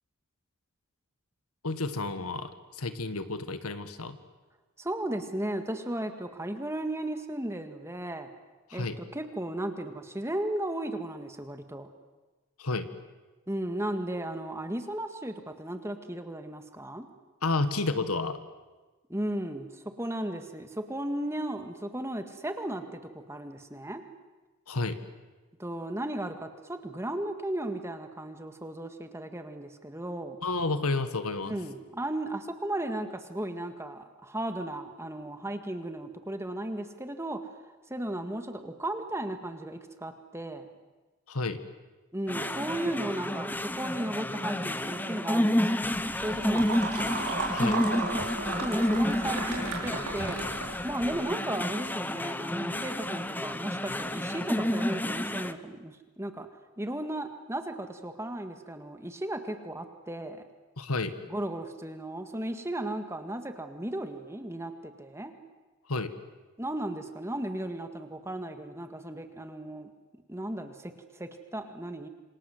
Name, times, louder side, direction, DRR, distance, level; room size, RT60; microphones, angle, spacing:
voice 1, 1.6-4.2 8.7-9.0 12.6-12.9 17.4-18.4 24.7-25.0 30.4-31.6 41.3-41.6 47.5-47.8 60.8-61.1 65.9-66.1, left 3 dB, 80° left, 11 dB, 1.7 m, -31 dB
voice 2, 4.8-8.3 8.7-11.9 13.5-17.1 19.1-24.0 25.6-30.4 31.5-37.4 37.9-40.7 42.1-45.9 46.2-47.1 48.6-50.4 50.8-56.5 56.8-60.4 61.3-65.3 66.6-69.9 70.3-72.1, right 1 dB, 10° right, 7 dB, 1.9 m, -35 dB
sound 1, 42.3-55.5, left 1 dB, 10° left, 0.8 m, -30 dB
sound 2, 45.8-51.1, right 3 dB, 85° right, 5.3 m, -35 dB
28.0 x 26.0 x 7.9 m, 1.2 s
head